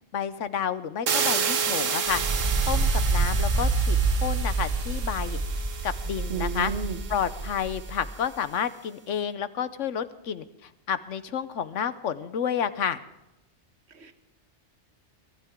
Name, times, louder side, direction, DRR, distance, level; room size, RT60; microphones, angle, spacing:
voice 1, 0.1-2.2 2.7-6.7 7.1-13.0, left 8 dB, 75° left, 14 dB, 1.2 m, -30 dB
sound 1, 1.1-7.9, right 6 dB, 75° right, 1.4 m, -31 dB
sound 2, 2.1-8.1, right 3 dB, 35° right, 1.2 m, -27 dB
voice 2, 6.3-7.0 13.9-14.1, right 5 dB, 60° right, 8 dB, 1.5 m, -32 dB
23.0 x 13.0 x 3.7 m, 0.90 s
omnidirectional pair, 1.3 m